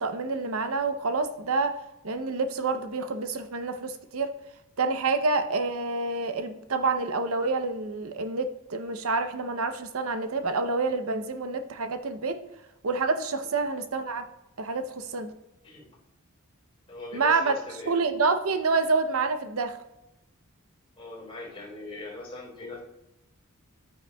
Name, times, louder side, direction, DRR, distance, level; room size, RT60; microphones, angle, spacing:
voice 1, 0.0-1.8 2.0-4.3 4.8-12.4 12.8-14.2 14.6-15.3 17.1-17.6 17.9-19.8, right 3 dB, 75° right, 8 dB, 0.7 m, -28 dB
voice 2, 16.9-18.0 21.0-22.8, left 2 dB, 25° left, -4 dB, 3.8 m, -41 dB
12.0 x 9.4 x 2.3 m, 0.93 s
head